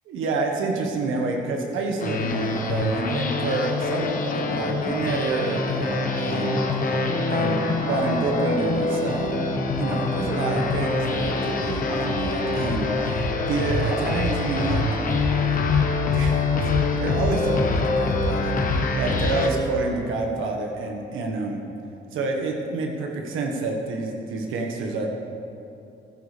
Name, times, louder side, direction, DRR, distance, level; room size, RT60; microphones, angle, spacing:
voice 1, 0.1-6.6 7.3-9.4 9.8-14.8 16.0-21.6 22.1-25.1, right 3 dB, 80° right, 1 dB, 1.4 m, -28 dB
dreamscape beginning, 2.0-19.5, left 3 dB, 40° left, 1.2 m, -25 dB
sound 1, 2.3-15.6, equal, 10° right, 1.7 m, -36 dB
13.5 x 11.5 x 3.4 m, 2.7 s
cardioid pair, 100°, 20 cm